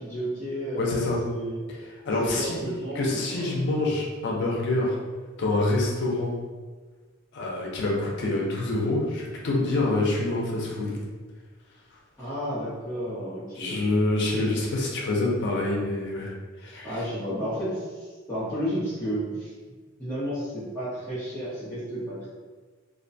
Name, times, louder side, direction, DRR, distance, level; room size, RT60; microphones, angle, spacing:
voice 1, 0.0-1.6 2.2-3.5 12.2-13.8 16.8-19.5 20.0-22.3, equal, 15° left, -14 dB, 0.8 m, -32 dB
voice 2, 0.8-1.2 2.1-2.6 2.9-5.0 5.4-6.3 7.3-11.0 13.6-16.3 16.6-17.0, left 2 dB, 60° left, -2 dB, 0.5 m, -26 dB
2.4 x 2.2 x 2.6 m, 1.4 s
head